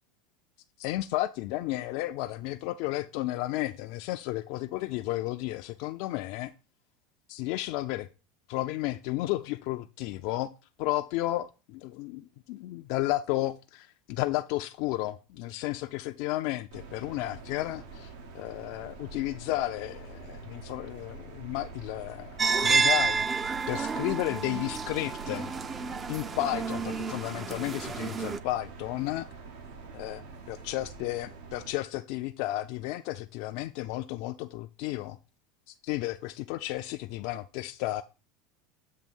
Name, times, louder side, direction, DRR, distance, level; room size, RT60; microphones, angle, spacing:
voice 1, 0.8-6.5 7.3-8.1 8.5-10.5 10.8-25.5 26.1-29.3 29.9-35.2 35.7-38.0, left 16 dB, 65° left, 0.3 m, -33 dB
sound 1, 16.7-31.7, right 4 dB, 80° right, 1.1 m, -46 dB
sound 2, 22.4-28.4, right 5 dB, 25° right, 0.4 m, -29 dB
7.4 x 2.7 x 5.2 m
supercardioid pair, 110°, 0 cm